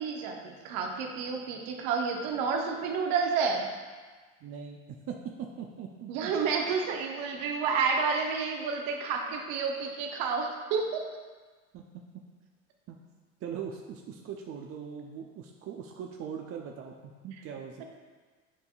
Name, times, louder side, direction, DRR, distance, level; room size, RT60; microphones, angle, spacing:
voice 1, 0.0-3.7 6.1-11.0, right 5 dB, 55° right, 2 dB, 1.1 m, -30 dB
voice 2, 4.4-4.8 5.1-6.3 11.7-11.9 12.9-13.0 13.4-16.9 17.2-17.8, right 7 dB, 35° right, 1 dB, 0.6 m, -40 dB
9.7 x 5.2 x 2.4 m, 1.4 s
figure-of-eight pair, 65°, 41 cm